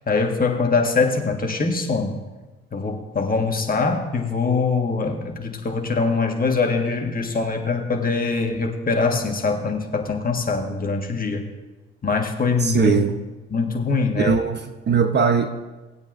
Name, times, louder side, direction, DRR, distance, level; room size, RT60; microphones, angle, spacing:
voice 1, 0.1-2.2 2.7-11.5 12.0-12.9 13.5-14.4, left 4 dB, 30° left, 3 dB, 1.6 m, -23 dB
voice 2, 12.6-13.2 14.2-15.5, right 6 dB, 35° right, 7 dB, 0.9 m, -20 dB
18.5 x 8.4 x 2.6 m, 1.2 s
hypercardioid pair, 50°, 30 cm